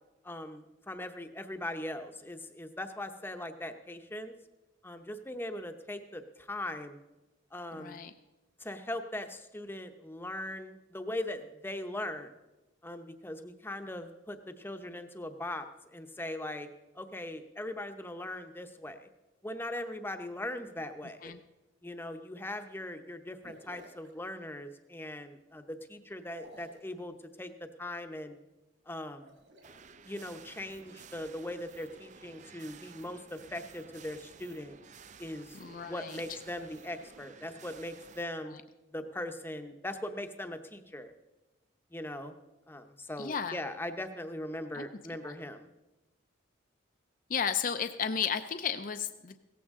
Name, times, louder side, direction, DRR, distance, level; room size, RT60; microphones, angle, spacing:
voice 1, 0.2-4.3 4.8-7.0 7.5-8.0 8.6-12.4 12.8-16.7 16.9-19.1 19.4-21.3 21.8-27.5 27.8-28.4 28.9-29.3 30.0-34.8 35.2-35.6 35.8-38.5 38.9-41.1 41.9-42.3 42.7-45.7, left 1 dB, 10° left, 7 dB, 0.8 m, -40 dB
voice 2, 7.7-8.1 21.2-21.4 35.5-36.2 43.2-43.6 44.7-44.8 45.2-45.3 47.3-49.4, left 7 dB, 40° left, 9 dB, 0.5 m, -33 dB
sound 1, 23.4-24.1 26.3-26.9 29.1-29.7, equal, 65° right, 3.4 m, -53 dB
sound 2, 29.6-38.2, right 5 dB, 35° right, 0.5 m, -53 dB
17.0 x 14.5 x 3.7 m, 1.1 s
head